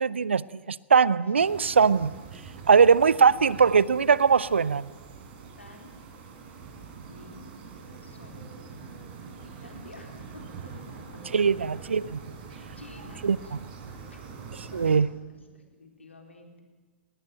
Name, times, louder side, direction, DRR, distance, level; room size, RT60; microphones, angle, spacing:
voice 1, 0.0-2.1 2.7-4.9 11.3-12.2 13.2-13.4 14.7-15.1, right 6 dB, 75° right, 0.6 m, -21 dB
sound 1, 1.4-15.0, right 5 dB, 50° right, 4.6 m, -44 dB
voice 2, 5.6-6.0 7.1-7.5 8.0-8.5 9.4-11.2 12.5-13.6 13.9-14.2 14.6-16.6, left 2 dB, 80° left, 4.0 m, -51 dB
19.0 x 19.0 x 9.0 m
figure-of-eight pair, 100°, 6 cm